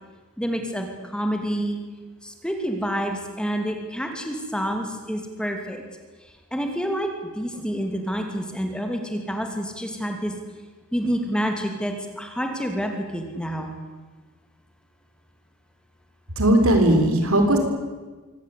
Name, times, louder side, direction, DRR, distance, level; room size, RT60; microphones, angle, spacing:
voice 1, 0.4-1.8 2.2-5.8 6.5-7.1 7.3-10.3 10.9-13.7, equal, 5° left, 4 dB, 2.7 m, -28 dB
voice 2, 16.4-17.6, right 1 dB, 75° right, 5 dB, 4.5 m, -18 dB
24.0 x 18.5 x 8.5 m, 1.3 s
head